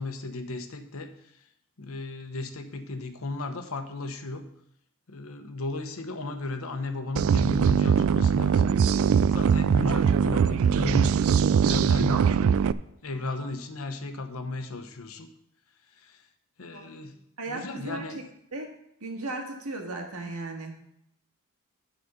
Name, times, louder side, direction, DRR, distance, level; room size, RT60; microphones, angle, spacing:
voice 1, 0.0-1.4 1.8-4.5 5.1-8.8 9.3-11.3 11.6-12.5 13.0-15.3 15.9-16.2 16.6-17.1 17.5-18.2, left 3 dB, 70° left, 7 dB, 1.0 m, -35 dB
sound 1, 7.2-12.7, right 7 dB, 65° right, 0.3 m, -22 dB
voice 2, 16.7-17.1 17.4-18.2 18.5-18.7 19.0-20.7, right 2 dB, 85° right, 2 dB, 1.8 m, -36 dB
10.5 x 4.2 x 6.7 m, 0.79 s
head